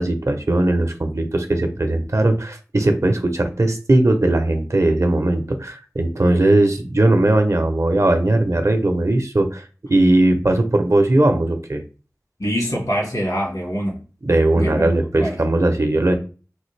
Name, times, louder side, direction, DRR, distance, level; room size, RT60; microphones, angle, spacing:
voice 1, 0.0-11.8 14.2-16.2, right 1 dB, 55° right, 0.6 m, -18 dB
voice 2, 12.4-14.0 14.5-15.4, equal, 75° left, 1.5 m, -24 dB
3.3 x 2.5 x 3.2 m
wide cardioid pair, 45°, 6 cm